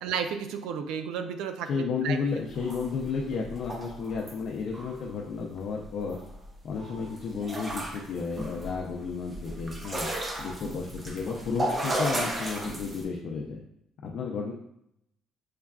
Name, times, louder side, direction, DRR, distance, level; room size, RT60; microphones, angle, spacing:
voice 1, 0.0-2.2, right 7 dB, 90° right, 8 dB, 0.4 m, -33 dB
voice 2, 1.7-6.2 6.6-10.1 10.4-13.6 14.0-14.5, left 5 dB, 60° left, -1 dB, 0.5 m, -32 dB
sound 1, 2.6-4.4 4.7-5.1 5.6-5.7 5.8-6.5 6.8-13.0, right 1 dB, 25° right, 0.6 m, -35 dB
6.4 x 2.3 x 2.3 m, 0.76 s
cardioid pair, 145°, 0 cm